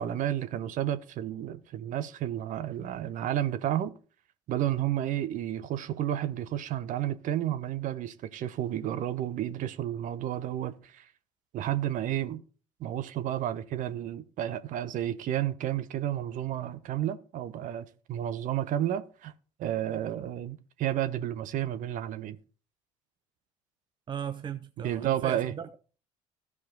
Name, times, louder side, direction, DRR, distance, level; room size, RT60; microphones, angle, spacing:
voice 1, 0.0-3.9 4.5-11.0 11.5-12.4 12.8-19.3 19.6-22.4 24.8-25.5, right 12 dB, 50° right, 1.0 m, -31 dB
voice 2, 24.1-25.8, right 8 dB, 30° right, 0.6 m, -37 dB
14.5 x 4.9 x 3.9 m
figure-of-eight pair, 60°, 17 cm